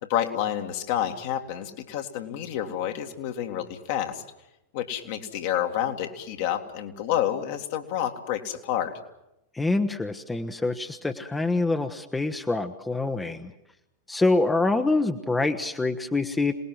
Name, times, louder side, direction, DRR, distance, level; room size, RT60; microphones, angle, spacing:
voice 1, 0.0-4.2 4.7-9.0, left 10 dB, 50° left, 4 dB, 2.2 m, -29 dB
voice 2, 9.5-13.5 14.1-16.5, left 2 dB, 10° left, 7 dB, 1.2 m, -25 dB
27.0 x 19.5 x 7.7 m, 0.90 s
figure-of-eight pair, 90°, 0 cm